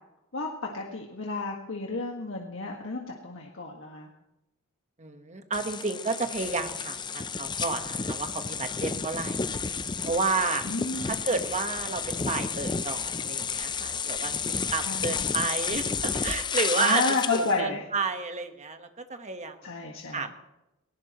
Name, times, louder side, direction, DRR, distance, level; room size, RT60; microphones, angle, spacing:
voice 1, 0.3-4.1 10.6-11.2 14.8-15.2 16.8-17.8 19.6-20.2, left 3 dB, 65° left, -1 dB, 1.7 m, -31 dB
voice 2, 5.0-9.5 10.0-10.6 11.0-17.0 17.3-19.6 20.1-20.4, right 4 dB, 35° right, 6 dB, 1.3 m, -31 dB
sound 1, 5.5-17.6, left 5 dB, 20° left, 0.5 m, -31 dB
20.0 x 18.0 x 3.1 m, 0.96 s
head